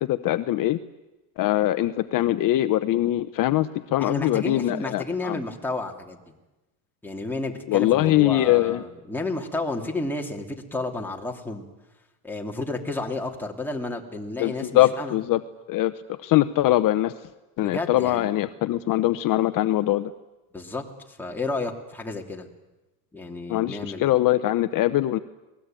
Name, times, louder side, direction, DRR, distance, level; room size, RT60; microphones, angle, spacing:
voice 1, 0.1-0.8 1.4-5.4 7.7-8.8 14.4-15.4 15.7-15.9 16.2-17.1 17.6-20.1 23.5-25.2, left 15 dB, 50° left, 11 dB, 0.9 m, -22 dB
voice 2, 4.0-6.2 7.0-11.7 12.2-15.1 17.6-18.4 20.5-22.5 23.1-24.1, left 2 dB, 5° left, 0 dB, 2.9 m, -31 dB
27.0 x 19.5 x 9.1 m, 1.0 s
cardioid pair, 140°, 42 cm